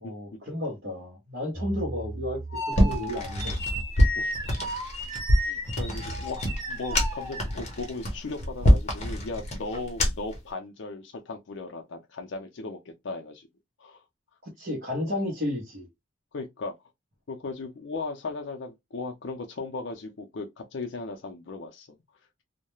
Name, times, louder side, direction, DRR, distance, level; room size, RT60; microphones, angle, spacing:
voice 1, 0.0-3.5 14.4-15.9, left 1 dB, 50° right, 0.8 m, -32 dB
sound 1, 1.5-7.9, equal, 15° right, 1.1 m, -35 dB
sound 2, 2.7-10.4, equal, 35° left, 0.7 m, -25 dB
voice 2, 4.2-4.8 5.4-13.5 13.8-14.0 15.1-15.2 16.3-16.7 17.3-22.0, left 3 dB, 65° left, 0.5 m, -37 dB
2.3 x 2.1 x 3.0 m
head